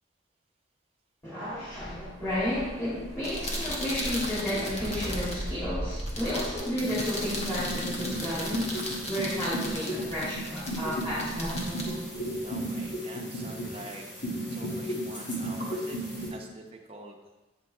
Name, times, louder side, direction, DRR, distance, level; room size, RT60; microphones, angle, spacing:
voice 1, 1.2-8.7 9.0-12.1, equal, 15° left, -13 dB, 2.8 m, -32 dB
sound 1, 1.5-6.6, equal, ahead, 0.8 m, -39 dB
sound 2, 3.1-12.9, left 1 dB, 35° left, 1.2 m, -37 dB
sound 3, 6.8-16.3, equal, 75° left, 2.5 m, -35 dB
voice 2, 12.3-14.1 14.5-16.0 16.3-17.2, right 2 dB, 30° right, 1 dB, 0.8 m, -45 dB
8.6 x 5.7 x 3.5 m, 1.1 s
head